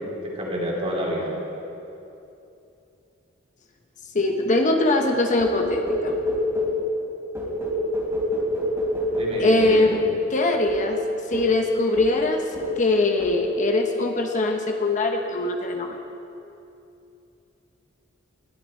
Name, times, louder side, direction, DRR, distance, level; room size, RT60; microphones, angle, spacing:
voice 1, 0.0-1.3 9.1-9.9, equal, 30° right, -3 dB, 3.0 m, -28 dB
voice 2, 4.1-6.1 9.4-10.0 10.3-11.0 11.3-12.4 12.8-16.0, left 2 dB, 40° left, 3 dB, 0.9 m, -22 dB
sound 1, 5.4-6.8 7.3-10.2 10.7-10.9 11.3-11.6 12.0-12.3 12.5-12.8 13.2-13.5, left 1 dB, 15° right, 2.9 m, -26 dB
19.5 x 12.0 x 4.3 m, 2.8 s
head